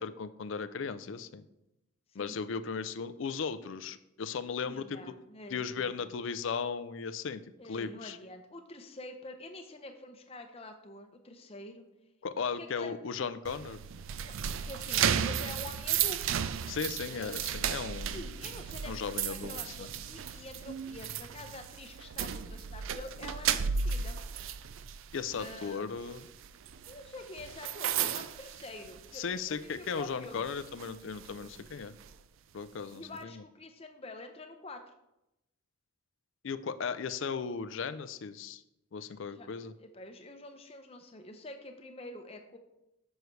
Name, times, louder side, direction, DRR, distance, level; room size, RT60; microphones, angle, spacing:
voice 1, 0.0-1.4 2.1-5.0 5.5-8.2 12.2-13.8 16.7-18.2 18.8-19.9 25.1-26.3 29.1-31.9 32.5-33.4 36.4-38.6 38.9-39.7, left 5 dB, 65° left, 13 dB, 0.4 m, -36 dB
voice 2, 4.6-6.0 7.6-11.9 12.6-13.0 14.2-14.3 14.6-16.2 17.1-17.4 18.1-24.2 25.3-25.9 26.9-30.5 32.9-34.8 39.3-39.5 39.8-42.6, left 2 dB, 30° left, 6 dB, 0.7 m, -47 dB
sound 1, 13.4-29.4 29.7-30.0 30.5-32.1, right 8 dB, 70° right, 0.4 m, -34 dB
9.3 x 6.4 x 3.2 m, 0.89 s
head